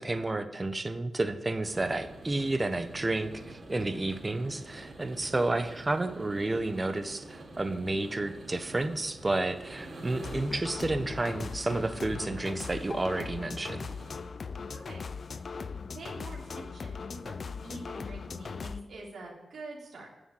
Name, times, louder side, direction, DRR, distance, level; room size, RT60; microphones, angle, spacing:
voice 1, 0.0-13.9, right 2 dB, 30° right, 9 dB, 1.3 m, -31 dB
sound 1, 1.6-14.2, right 2 dB, 50° right, 4.0 m, -47 dB
sound 2, 10.2-18.8, left 5 dB, 60° left, 0.6 m, -39 dB
voice 2, 14.7-15.0 15.9-20.1, right 1 dB, 75° right, -3 dB, 3.4 m, -45 dB
9.7 x 7.1 x 8.8 m, 1.1 s
cardioid pair, 50°, 0 cm